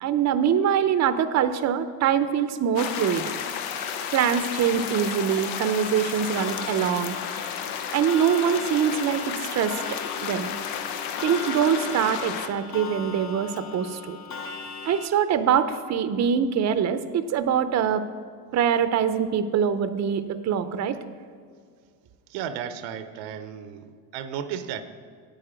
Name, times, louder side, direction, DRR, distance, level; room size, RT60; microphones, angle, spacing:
voice 1, 0.0-3.2 4.1-7.2 7.9-10.5 11.2-14.2 14.9-18.1 18.5-21.0, right 8 dB, 40° right, 11 dB, 0.6 m, -24 dB
sound 1, 2.8-12.5, left 8 dB, 85° left, 0.8 m, -32 dB
Clock, 6.4-15.1, left 5 dB, 40° left, 0.8 m, -39 dB
voice 2, 22.3-24.8, right 8 dB, 80° right, 11 dB, 0.8 m, -34 dB
9.0 x 8.3 x 5.0 m, 2.1 s
supercardioid pair, 95°, 45 cm